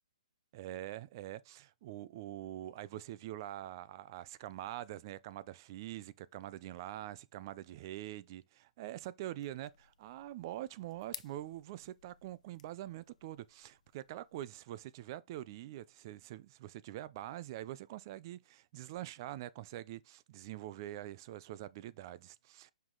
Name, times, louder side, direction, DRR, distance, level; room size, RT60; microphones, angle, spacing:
voice 1, 0.5-22.7, right 14 dB, 35° right, 0.4 m, -45 dB
sound 1, 9.4-14.4, left 7 dB, 70° left, 0.6 m, -55 dB
5.6 x 4.8 x 3.8 m
hypercardioid pair, 160°, 4 cm